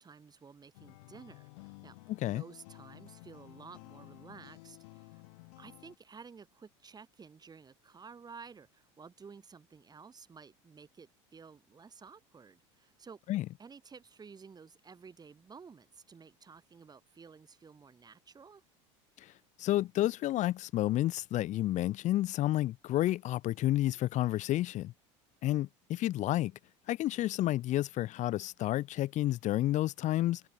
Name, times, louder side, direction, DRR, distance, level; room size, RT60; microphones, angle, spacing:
voice 1, 0.0-2.0 2.2-5.2 5.6-13.2 13.6-18.6, right 5 dB, 25° right, 4.4 m, -53 dB
sound 1, 0.7-6.0, left 26 dB, 75° left, 1.5 m, -53 dB
voice 2, 2.1-2.4 13.3-13.5 19.2-19.3 19.6-24.9 25.4-26.5 26.9-30.4, left 15 dB, 50° left, 0.9 m, -30 dB
supercardioid pair, 100°, 16 cm